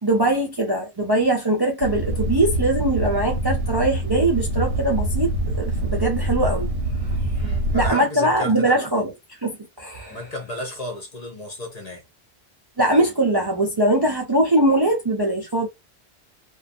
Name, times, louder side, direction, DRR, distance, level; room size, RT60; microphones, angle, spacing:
voice 1, 0.0-6.7 7.1-7.2 7.7-9.1 9.4-10.2 12.8-15.7, right 1 dB, 35° right, 0.4 m, -21 dB
sound 1, 1.8-7.9, right 1 dB, 65° right, 0.8 m, -25 dB
voice 2, 7.3-8.9 10.1-12.0, left 1 dB, 40° left, 0.7 m, -33 dB
2.5 x 2.3 x 2.5 m
omnidirectional pair, 1.1 m